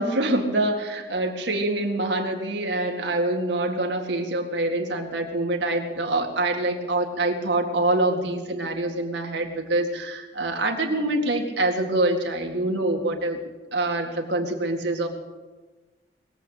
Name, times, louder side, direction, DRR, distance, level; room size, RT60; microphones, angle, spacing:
voice 1, 0.0-13.4 13.7-15.1, right 2 dB, 70° right, 3 dB, 2.1 m, -25 dB
21.0 x 8.2 x 8.3 m, 1.3 s
head